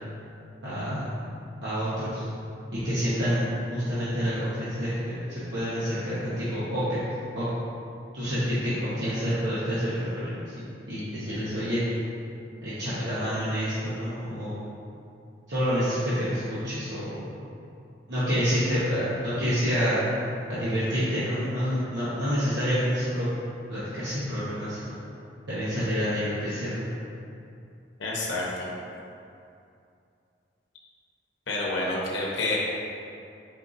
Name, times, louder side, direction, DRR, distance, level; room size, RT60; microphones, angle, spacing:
voice 1, 0.6-1.1 1.6-2.2 2.8-3.4 3.7-4.9 5.5-6.8 7.4-7.5 8.1-11.8 12.6-14.6 15.5-17.2 18.1-20.1 20.5-23.3 23.7-25.0 25.5-26.8, equal, 75° right, -13 dB, 0.9 m, -28 dB
voice 2, 28.0-28.5 31.5-32.6, left 2 dB, 75° left, -4 dB, 0.7 m, -29 dB
4.6 x 2.5 x 3.9 m, 2.6 s
head